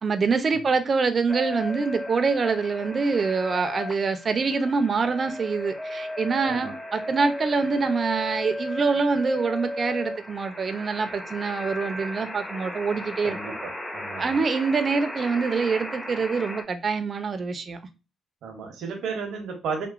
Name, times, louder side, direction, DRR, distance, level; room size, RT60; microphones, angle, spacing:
voice 1, 0.0-13.4 14.2-17.8, right 4 dB, 40° right, 0.4 m, -25 dB
sound 1, 1.3-16.6, left 1 dB, 10° left, 0.5 m, -35 dB
voice 2, 6.4-6.7 13.2-14.4 18.4-19.9, right 5 dB, 80° right, 0.6 m, -34 dB
2.9 x 2.1 x 2.4 m
cardioid pair, 90°, 0 cm